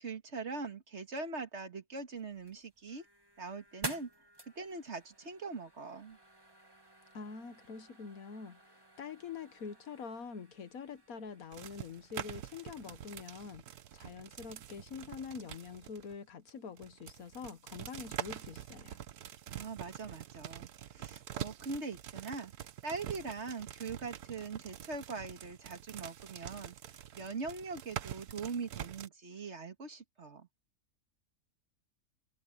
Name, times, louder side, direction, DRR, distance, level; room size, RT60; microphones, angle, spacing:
voice 1, 0.0-3.1 3.4-4.1 4.6-6.2 19.5-22.5 22.8-26.8 27.1-30.5, right 4 dB, 50° right, 2.0 m, -42 dB
sound 1, 2.1-13.1, right 1 dB, 15° right, 1.8 m, -50 dB
voice 2, 7.1-8.6 9.0-13.6 13.9-19.0, left 5 dB, 70° left, 1.6 m, -45 dB
sound 2, 11.5-16.2 16.5-16.6 16.8-29.1, right 11 dB, 85° right, 1.4 m, -46 dB
omnidirectional pair, 1.6 m